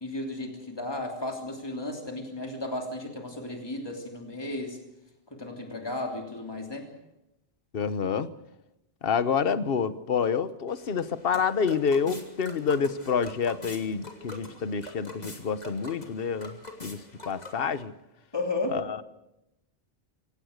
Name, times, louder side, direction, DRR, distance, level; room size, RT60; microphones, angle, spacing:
voice 1, 0.0-4.8 5.3-6.9 18.3-18.8, left 2 dB, 20° left, 2 dB, 3.1 m, -34 dB
voice 2, 7.7-8.3 9.0-16.5 16.8-17.9 18.7-19.0, left 6 dB, 55° left, 12 dB, 1.2 m, -28 dB
hollow clop beatbox, 10.7-17.8, left 2 dB, 35° left, 3.1 m, -45 dB
25.5 x 17.5 x 6.6 m, 0.88 s
omnidirectional pair, 1.2 m